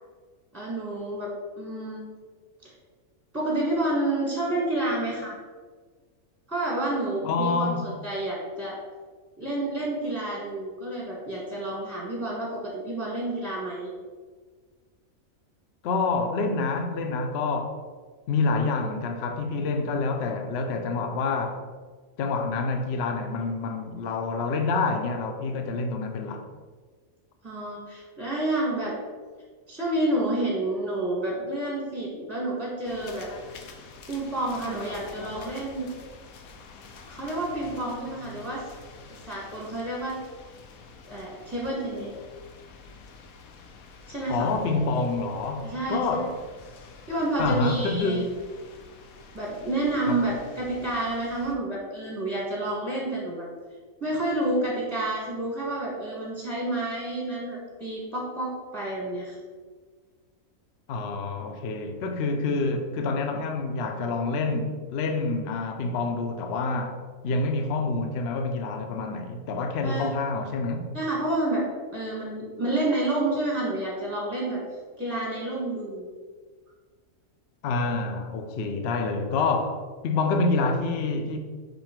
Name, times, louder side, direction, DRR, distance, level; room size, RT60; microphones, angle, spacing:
voice 1, 0.5-2.1 2.6-2.7 3.3-5.4 6.5-8.8 9.4-13.9 27.4-28.9 29.7-33.3 34.1-35.9 37.0-38.6 39.3-40.2 41.0-42.1 44.1-44.5 45.6-46.2 47.1-48.2 49.3-53.5 54.0-59.3 69.8-70.1 70.9-74.6 75.0-76.1, right 1 dB, 10° right, 1.2 m, -29 dB
voice 2, 7.2-7.9 15.8-17.8 18.3-21.6 22.2-26.5 44.3-46.4 47.4-48.4 50.1-50.2 60.9-70.9 77.6-81.4, left 3 dB, 60° left, 0.8 m, -27 dB
sound 1, 32.8-51.6, left 4 dB, 85° left, 1.2 m, -47 dB
5.4 x 5.3 x 4.4 m
omnidirectional pair, 1.4 m